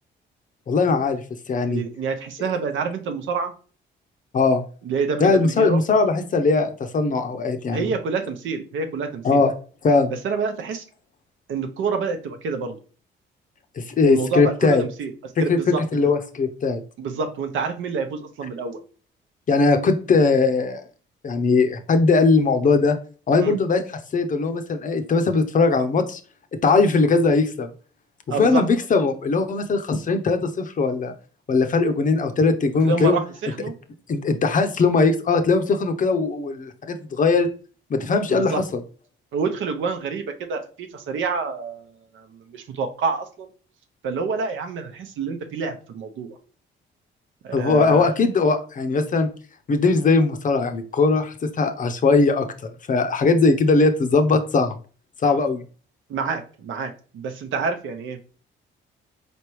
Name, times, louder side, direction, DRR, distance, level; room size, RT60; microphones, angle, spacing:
voice 1, 0.7-1.8 4.3-4.6 5.2-7.9 9.2-9.5 9.8-10.1 13.8-14.8 15.5-16.8 19.5-20.9 21.2-23.0 23.3-23.8 24.1-26.2 26.6-27.7 28.3-31.1 31.5-33.2 34.1-37.5 37.9-38.8 47.5-49.3 49.7-52.5 52.9-54.7 55.2-55.6, left 4 dB, 40° left, 7 dB, 0.6 m, -20 dB
voice 2, 1.7-3.5 4.8-5.8 7.7-9.4 10.2-10.8 11.5-12.8 14.0-15.1 15.4-15.8 17.0-18.8 23.4-23.6 28.3-28.6 32.8-33.7 38.3-38.6 39.3-40.2 40.5-41.8 42.1-43.5 44.0-46.3 47.4-48.1 56.1-58.2, right 5 dB, 75° right, 6 dB, 0.7 m, -27 dB
4.2 x 3.4 x 3.0 m, 0.39 s
cardioid pair, 90°, 20 cm